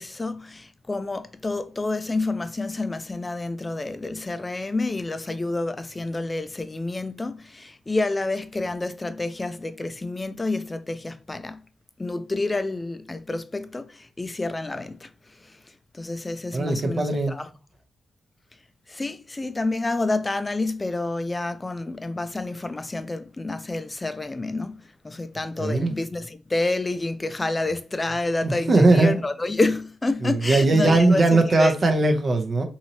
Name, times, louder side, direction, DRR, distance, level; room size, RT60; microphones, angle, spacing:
voice 1, 0.0-11.6 12.0-17.5 18.9-31.7, left 2 dB, 25° left, 0.4 m, -29 dB
voice 2, 16.5-17.3 25.6-25.9 28.4-29.2 30.2-32.6, right 2 dB, 45° right, 0.7 m, -19 dB
2.8 x 2.7 x 2.8 m
cardioid pair, 70°, 0 cm